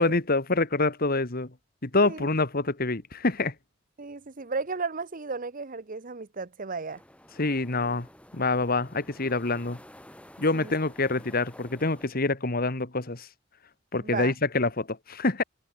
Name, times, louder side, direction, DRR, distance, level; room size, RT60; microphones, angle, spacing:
voice 1, 0.0-1.5 1.8-3.5 7.4-8.1 8.3-9.8 10.4-13.3 13.9-15.4, left 3 dB, 50° left, 1.9 m, -26 dB
voice 2, 4.0-7.0 10.5-10.7 14.0-14.3, right 4 dB, 45° right, 1.0 m, -34 dB
sound 1, 6.9-12.1, left 1 dB, 5° left, 5.8 m, -51 dB
head